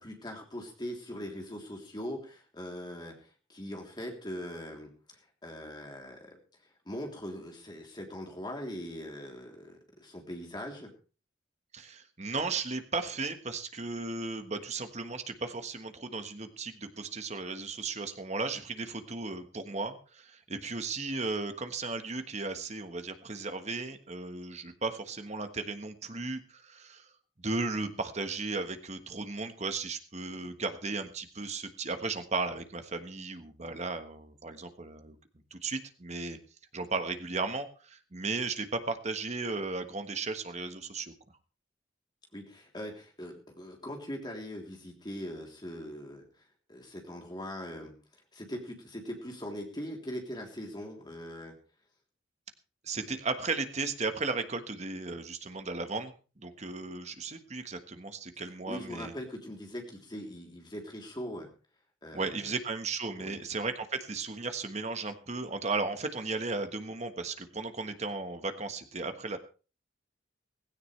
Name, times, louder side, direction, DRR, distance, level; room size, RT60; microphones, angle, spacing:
voice 1, 0.0-3.1 3.5-6.4 6.8-10.9 42.3-46.2 46.7-47.9 48.3-51.5 58.7-61.5 62.0-62.5 63.1-63.4, equal, 20° left, 1 dB, 3.3 m, -41 dB
voice 2, 11.7-27.1 27.4-35.2 35.5-36.4 36.7-41.1 52.8-59.1 62.1-69.4, right 3 dB, 35° right, 7 dB, 1.4 m, -35 dB
16.5 x 16.5 x 3.3 m, 0.35 s
head